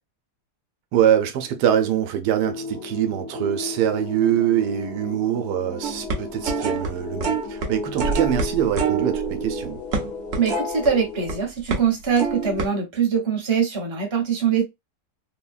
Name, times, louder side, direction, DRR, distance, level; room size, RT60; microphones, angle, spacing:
voice 1, 0.9-9.8, right 10 dB, 85° right, 1.2 m, -23 dB
sound 1, 2.4-11.4, left 3 dB, 75° left, 1.3 m, -35 dB
sound 2, 5.8-6.9 7.2-7.7 8.0-11.3 11.7-11.9 12.2-12.6, right 4 dB, 50° right, 0.8 m, -26 dB
voice 2, 10.4-14.6, right 7 dB, 20° right, 0.8 m, -23 dB
3.4 x 2.1 x 2.3 m
omnidirectional pair, 1.7 m